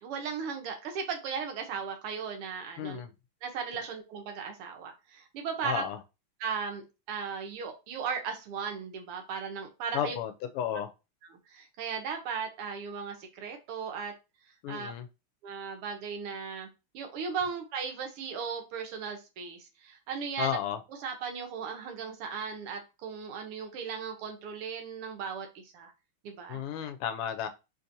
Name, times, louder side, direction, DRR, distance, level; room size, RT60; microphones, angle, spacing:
voice 1, 0.0-3.0 3.4-5.8 6.4-6.8 7.1-10.2 11.2-14.1 14.7-14.9 15.4-16.7 16.9-20.6 20.9-25.9 26.2-26.6, right 6 dB, 85° right, 4 dB, 1.8 m, -36 dB
voice 2, 2.8-3.1 5.6-6.0 9.9-10.9 14.6-15.0 20.4-20.8 26.5-27.5, left 9 dB, 85° left, 9 dB, 1.5 m, -33 dB
4.1 x 2.6 x 2.7 m, 0.27 s
omnidirectional pair, 2.4 m